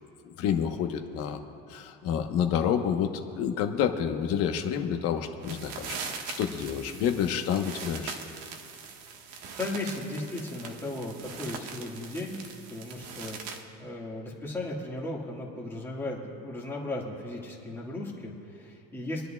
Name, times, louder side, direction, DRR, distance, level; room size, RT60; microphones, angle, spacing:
voice 1, 0.2-1.4 1.7-6.0 6.4-8.1, left 8 dB, 50° left, 5 dB, 1.0 m, -28 dB
sound 1, 5.4-13.6, right 5 dB, 70° right, 1.4 m, -41 dB
voice 2, 9.6-12.4 12.7-19.3, left 2 dB, 10° left, -5 dB, 1.7 m, -36 dB
27.5 x 10.5 x 2.3 m, 2.8 s
cardioid pair, 160°, 31 cm